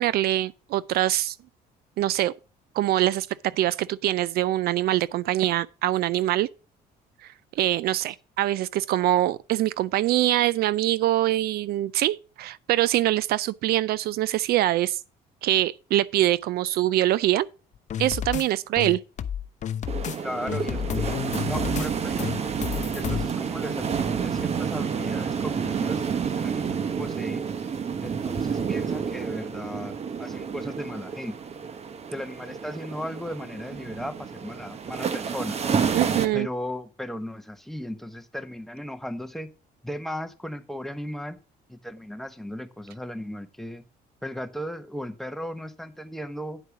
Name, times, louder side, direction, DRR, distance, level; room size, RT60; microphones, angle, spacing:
voice 1, 0.0-1.4 2.0-2.3 2.7-6.5 7.6-15.0 15.4-17.5 18.0-19.0 35.9-36.5, right 14 dB, 65° right, 0.4 m, -24 dB
sound 1, 17.9-18.4 18.8-20.2 20.5-21.9 22.2-23.3, left 9 dB, 45° left, 0.7 m, -30 dB
sound 2, 19.9-36.3, right 6 dB, 40° right, 0.9 m, -29 dB
voice 2, 20.2-21.2 21.5-22.6 22.9-27.4 28.0-31.4 32.1-35.6 36.3-39.5 39.8-41.4 41.7-43.8 44.2-46.6, equal, ahead, 1.0 m, -36 dB
9.9 x 4.6 x 5.9 m
cardioid pair, 110°, 17 cm